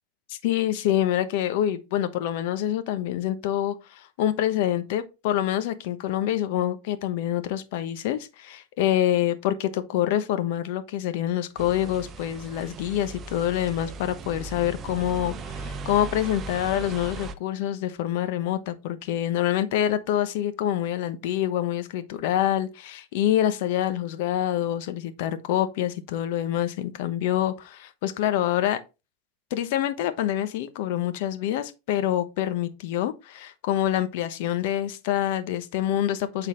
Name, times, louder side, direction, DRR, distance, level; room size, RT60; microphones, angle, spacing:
voice 1, 0.3-28.8 29.5-36.5, left 11 dB, 70° left, 1.0 m, -26 dB
sound 1, 11.6-17.4, right 3 dB, 30° right, 0.7 m, -38 dB
8.4 x 4.0 x 3.8 m
supercardioid pair, 125°, 0 cm